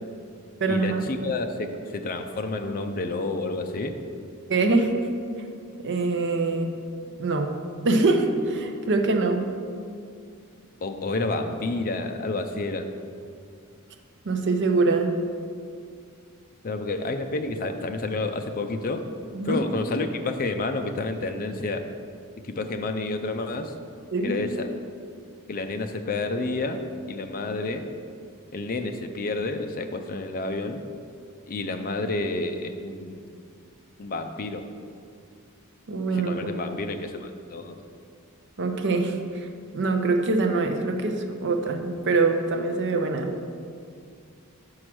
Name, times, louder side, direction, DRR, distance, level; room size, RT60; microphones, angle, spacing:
voice 1, 0.7-4.0 10.8-12.9 16.6-19.1 19.4-21.8 22.4-23.7 24.2-24.7 25.5-26.8 27.1-27.9 28.5-30.8 31.5-33.3 34.0-34.6 36.1-37.8, left 2 dB, 40° left, 6 dB, 0.5 m, -29 dB
voice 2, 4.5-5.0 5.8-6.7 7.2-7.6 7.8-9.4 14.2-15.1 19.3-19.6 24.1-24.4 35.9-36.4 38.6-39.5 39.7-43.3, right 3 dB, 55° right, 5 dB, 0.6 m, -24 dB
6.2 x 4.8 x 6.0 m, 2.3 s
head